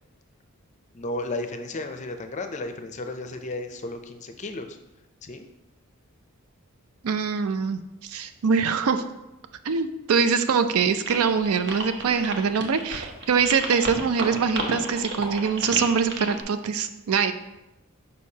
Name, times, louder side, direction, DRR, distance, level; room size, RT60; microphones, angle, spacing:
voice 1, 0.9-4.8 5.2-5.5, left 2 dB, 35° left, 7 dB, 0.4 m, -33 dB
voice 2, 7.0-9.0 9.6-17.3, right 5 dB, 80° right, 10 dB, 0.4 m, -23 dB
sound 1, 11.1-16.4, right 3 dB, 55° right, 0.8 m, -32 dB
6.4 x 5.3 x 2.8 m, 0.96 s
head